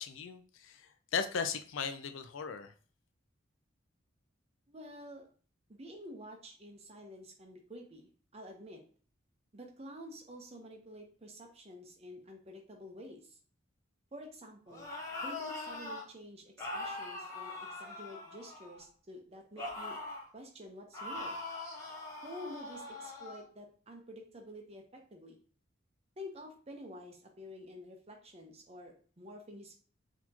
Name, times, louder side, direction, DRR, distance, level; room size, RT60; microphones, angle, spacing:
voice 1, 0.0-2.7, left 6 dB, 80° left, 9 dB, 0.4 m, -37 dB
voice 2, 4.7-5.2 5.7-8.8 9.5-13.4 14.1-14.9 15.2-20.0 20.3-21.4 22.2-25.4 26.2-29.8, equal, 30° right, 2 dB, 0.7 m, -49 dB
sound 1, 14.7-16.0 16.6-18.9 19.6-20.3 20.9-23.4, left 2 dB, 15° left, 0.8 m, -42 dB
4.0 x 2.9 x 2.8 m, 0.42 s
head